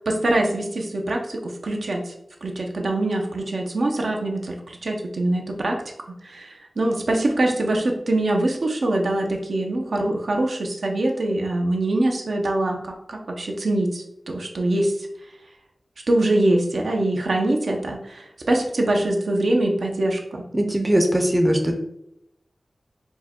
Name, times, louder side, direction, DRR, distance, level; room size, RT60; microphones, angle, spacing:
voice 1, 0.1-2.1 2.4-5.8 6.2-15.1 16.1-20.4, right 1 dB, 75° right, 1 dB, 0.6 m, -23 dB
voice 2, 20.5-21.8, equal, 20° right, 3 dB, 0.5 m, -20 dB
4.5 x 2.2 x 4.3 m, 0.82 s
wide cardioid pair, 90°, 0 cm